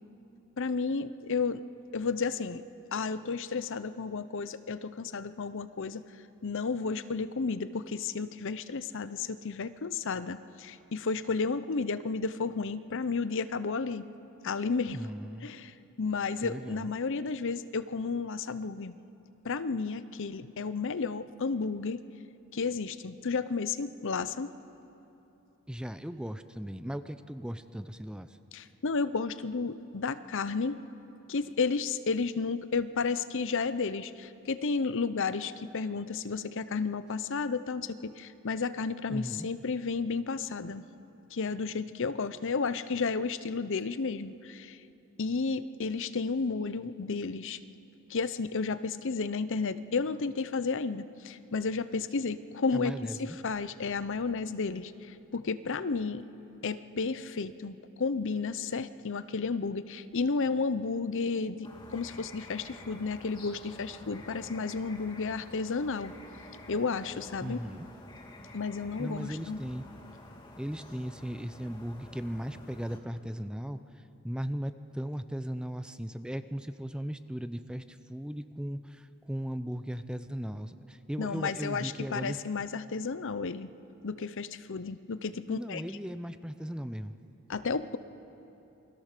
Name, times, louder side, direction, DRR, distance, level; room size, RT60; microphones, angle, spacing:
voice 1, 0.6-1.6 1.9-2.6 2.9-6.0 6.4-14.1 14.4-15.0 15.4-19.0 19.4-22.0 22.5-24.5 28.5-30.8 31.3-40.8 41.3-44.8 45.2-47.6 48.1-56.2 56.6-66.1 66.7-67.6 68.5-69.6 81.2-83.7 84.0-85.8 87.5-88.0, left 4 dB, 60° left, 13 dB, 0.7 m, -32 dB
voice 2, 14.9-15.5 16.4-16.9 25.7-28.4 39.1-39.5 52.7-53.4 67.4-67.9 69.0-69.8 70.6-73.8 74.2-82.4 85.5-87.2, equal, 5° right, 11 dB, 0.6 m, -37 dB
sound 1, 61.6-73.0, left 1 dB, 20° left, 3.0 m, -49 dB
28.0 x 21.5 x 6.7 m, 2.9 s
head